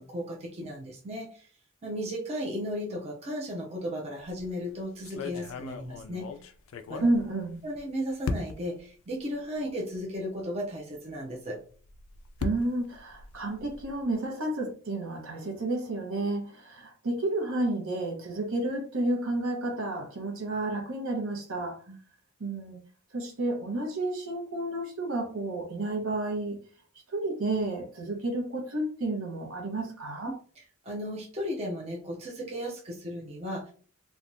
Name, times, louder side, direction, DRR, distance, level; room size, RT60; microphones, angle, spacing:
voice 1, 0.0-1.5 1.8-6.3 6.9-7.1 7.6-11.6 21.9-22.0 30.3-30.4 30.8-33.7, equal, 30° right, -2 dB, 0.5 m, -35 dB
sound 1, 4.2-4.5 5.0-7.8 8.2-8.8 9.5-9.6 10.0-10.1 11.7-14.0, left 4 dB, 65° left, 0.3 m, -37 dB
voice 2, 7.0-7.6 12.4-21.8 22.4-22.8 23.1-26.6 27.1-30.3, right 2 dB, 70° right, 1 dB, 0.9 m, -31 dB
3.3 x 2.3 x 2.6 m, 0.42 s
head